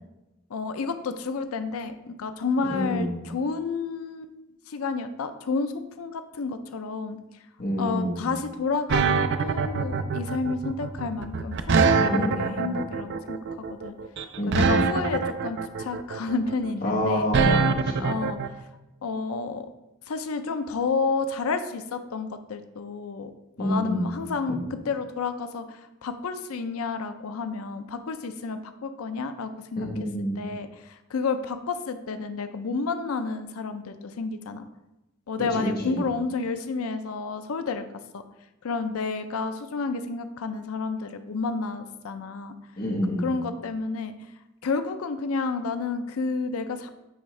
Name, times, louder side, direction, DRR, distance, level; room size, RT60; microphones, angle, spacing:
voice 1, 0.5-4.3 4.7-7.2 7.8-13.9 14.5-17.3 18.0-18.6 19.0-19.7 20.1-23.3 23.6-29.9 30.4-34.6 35.3-37.9 38.1-38.2 38.6-42.5 43.2-44.1 44.6-46.9, left 4 dB, 85° left, 9 dB, 0.5 m, -30 dB
voice 2, 2.6-3.1 7.6-8.2 12.0-12.8 14.4-14.8 16.8-18.1 23.6-24.1 29.8-30.4 35.6-36.0 42.8-43.2, equal, 45° left, -1 dB, 1.4 m, -28 dB
sound 1, 8.9-18.5, right 5 dB, 55° right, 0.4 m, -24 dB
9.3 x 3.5 x 3.2 m, 0.99 s
head